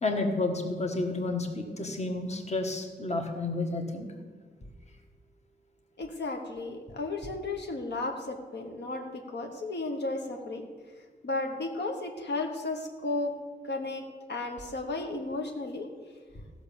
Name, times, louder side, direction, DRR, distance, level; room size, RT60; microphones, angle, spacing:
voice 1, 0.0-4.1, left 2 dB, 35° left, 4 dB, 1.4 m, -31 dB
voice 2, 6.0-10.6 11.2-13.3 13.6-14.0 14.3-15.9, left 2 dB, 70° left, 3 dB, 1.2 m, -34 dB
14.5 x 6.2 x 7.0 m, 1.5 s
wide cardioid pair, 125°, 19 cm